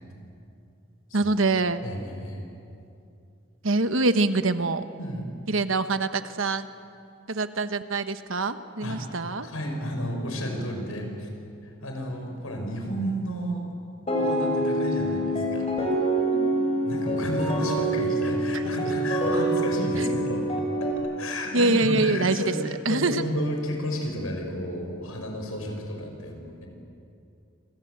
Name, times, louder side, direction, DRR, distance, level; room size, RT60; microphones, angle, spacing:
voice 1, 1.1-1.8 3.6-4.8 5.5-6.7 7.3-9.5 16.3-16.6 18.5-18.6 21.5-23.2, right 3 dB, 70° right, 10 dB, 1.2 m, -25 dB
voice 2, 1.8-2.4 5.0-5.3 8.8-9.0 9.4-11.3 11.6-13.7 14.2-15.7 16.5-20.5 21.2-26.7, equal, 80° left, 2 dB, 6.1 m, -32 dB
sound 1, 14.1-20.9, right 1 dB, 30° left, 4.9 m, -26 dB
27.5 x 26.0 x 8.1 m, 2.5 s
head